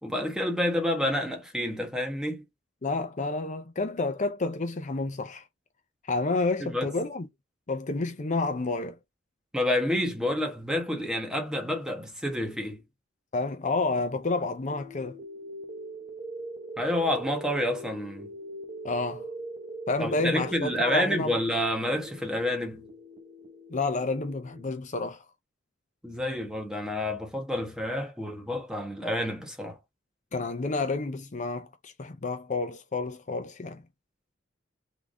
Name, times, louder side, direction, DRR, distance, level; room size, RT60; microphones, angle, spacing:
voice 1, 0.0-2.4 6.6-6.9 9.5-12.8 16.8-18.3 20.0-22.9 26.0-29.8, left 1 dB, 5° right, 1.2 m, -29 dB
voice 2, 2.8-5.4 6.1-7.3 7.7-9.0 13.3-15.2 18.8-19.3 19.9-21.4 23.7-25.2 30.3-33.8, left 3 dB, 40° left, 0.6 m, -30 dB
sound 1, 14.7-24.7, right 2 dB, 35° right, 0.8 m, -42 dB
3.8 x 3.5 x 3.7 m
head